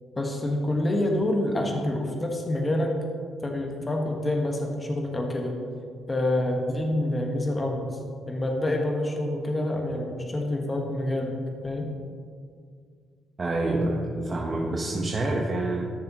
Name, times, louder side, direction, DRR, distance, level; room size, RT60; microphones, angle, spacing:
voice 1, 0.1-2.9 3.4-5.6 6.1-8.0 8.3-11.4 11.6-11.9, left 1 dB, 25° left, 1 dB, 1.4 m, -27 dB
voice 2, 13.4-15.8, right 2 dB, 30° right, -2 dB, 1.1 m, -27 dB
13.5 x 6.7 x 3.0 m, 2.1 s
cardioid pair, 90°, 0 cm